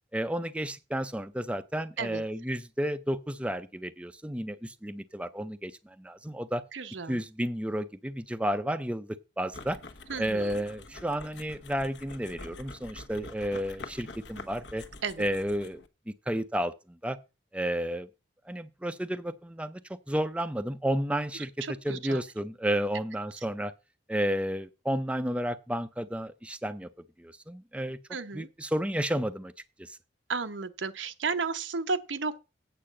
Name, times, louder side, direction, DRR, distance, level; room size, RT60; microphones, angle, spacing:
voice 1, 0.1-6.6 7.1-9.8 10.2-14.8 15.2-15.8 16.1-17.2 17.5-18.1 18.5-19.8 20.1-23.7 24.1-26.9 27.2-28.0 28.3-29.5 29.8-30.0, equal, 5° right, 0.4 m, -32 dB
voice 2, 6.7-7.2 10.1-10.6 15.0-15.3 21.6-22.2 28.1-28.5 30.3-32.4, right 4 dB, 85° right, 0.8 m, -33 dB
sound 1, 9.5-15.9, left 3 dB, 70° left, 1.1 m, -46 dB
8.6 x 4.8 x 7.6 m
head